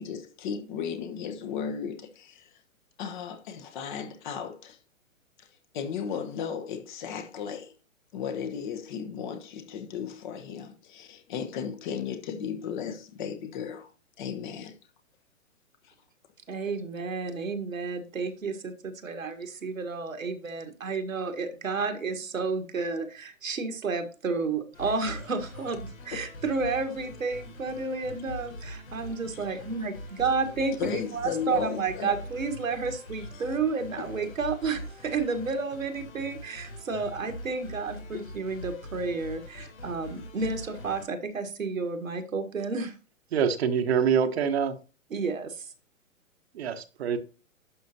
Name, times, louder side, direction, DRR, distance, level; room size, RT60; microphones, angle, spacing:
voice 1, 0.0-2.5 3.0-4.8 5.4-5.5 5.7-7.7 8.1-13.9 14.2-14.7 26.1-26.3 30.8-32.1 33.5-33.6 34.0-34.1 38.1-38.2 39.6-39.7, left 7 dB, 35° left, 1.2 m, -35 dB
voice 2, 16.5-28.5 28.9-42.9 45.1-45.7, right 4 dB, 75° right, 1.6 m, -31 dB
sound 1, 24.7-41.1, left 1 dB, 75° left, 3.8 m, -43 dB
voice 3, 43.3-44.7 46.5-47.2, right 7 dB, 50° right, 1.1 m, -25 dB
11.5 x 6.3 x 2.8 m
figure-of-eight pair, 125°, 41 cm